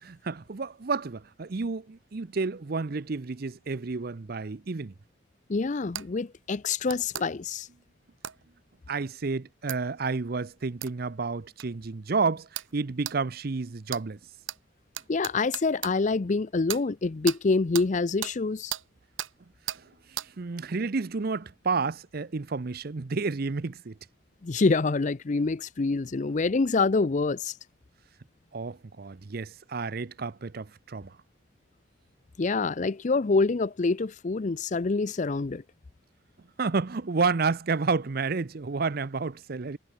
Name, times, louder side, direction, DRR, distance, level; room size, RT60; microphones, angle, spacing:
voice 1, 0.0-4.9 8.9-14.2 19.7-24.0 28.5-31.2 36.6-39.8, right 4 dB, 50° right, 0.6 m, -30 dB
voice 2, 5.5-7.7 15.1-18.7 24.4-27.5 32.4-35.6, left 3 dB, 40° left, 0.5 m, -26 dB
sound 1, 5.9-6.1 6.9-7.3 8.2-8.4 9.7-9.8 10.8-10.9 11.6-11.7 12.5-12.7 13.0-13.2 13.9-14.0 14.5-14.6 14.9-15.9 16.7-16.8 17.3-17.4 17.7-17.9 18.2-18.3 18.7-18.8 19.2-19.3 19.7-19.8 20.2-20.3, right 12 dB, 90° right, 1.3 m, -35 dB
head